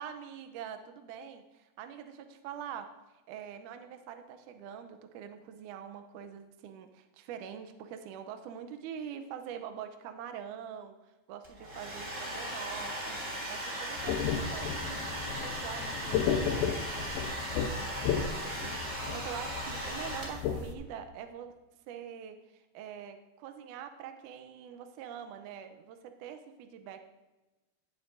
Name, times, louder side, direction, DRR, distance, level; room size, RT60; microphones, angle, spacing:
voice 1, 0.0-2.9 3.3-11.0 11.3-13.2 13.5-21.5 21.9-27.0, right 8 dB, 85° right, 7 dB, 1.8 m, -44 dB
Domestic sounds home sounds, 11.4-20.6, right 1 dB, 35° right, 1.2 m, -38 dB
sound 1, 14.0-20.7, left 7 dB, 80° left, 2.5 m, -34 dB
17.0 x 8.1 x 2.6 m, 1.1 s
omnidirectional pair, 4.4 m